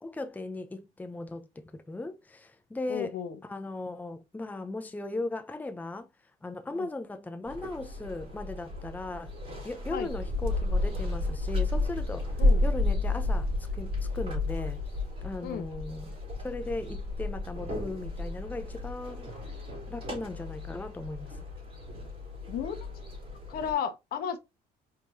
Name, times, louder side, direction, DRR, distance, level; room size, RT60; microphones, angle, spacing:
voice 1, 0.0-3.2 3.4-6.1 6.4-9.3 9.6-14.8 15.2-16.2 16.4-19.4 19.9-21.4, left 2 dB, 10° left, 0.6 m, -37 dB
voice 2, 2.9-3.4 6.7-6.9 9.9-10.1 12.4-12.6 15.4-15.7 22.5-22.8 23.5-24.4, left 8 dB, 65° left, 1.0 m, -33 dB
sound 1, 7.5-23.7, left 2 dB, 35° right, 3.3 m, -32 dB
4.7 x 3.7 x 2.7 m
cardioid pair, 110°, 17 cm